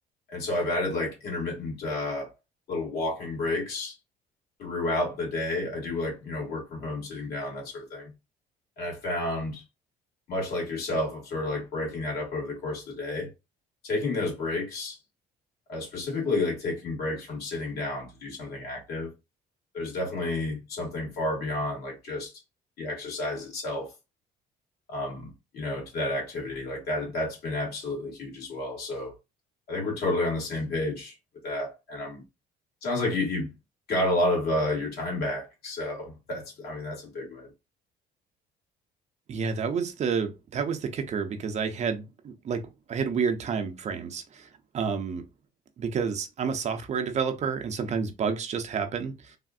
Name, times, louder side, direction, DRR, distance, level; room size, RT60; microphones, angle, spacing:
voice 1, 0.3-2.3 2.7-4.0 4.6-8.1 8.8-9.6 10.3-13.3 13.8-15.0 15.7-19.1 19.7-22.3 22.8-23.9 24.9-29.1 29.7-31.1 31.4-32.2 32.8-33.5 33.9-37.5, left 2 dB, 70° left, 2.0 m, -30 dB
voice 2, 39.3-44.5 44.7-45.2 45.8-49.4, right 6 dB, 40° right, 0.5 m, -30 dB
3.4 x 2.5 x 2.4 m
cardioid pair, 110°, 17 cm